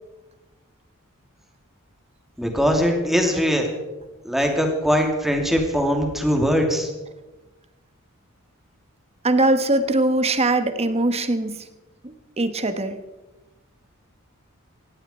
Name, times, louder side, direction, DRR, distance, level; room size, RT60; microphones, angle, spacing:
voice 1, 2.4-3.7 4.2-6.9, equal, ahead, 2 dB, 2.6 m, -21 dB
voice 2, 9.2-11.6 12.4-13.0, right 2 dB, 30° right, 9 dB, 1.2 m, -21 dB
19.0 x 15.0 x 4.4 m, 1.1 s
head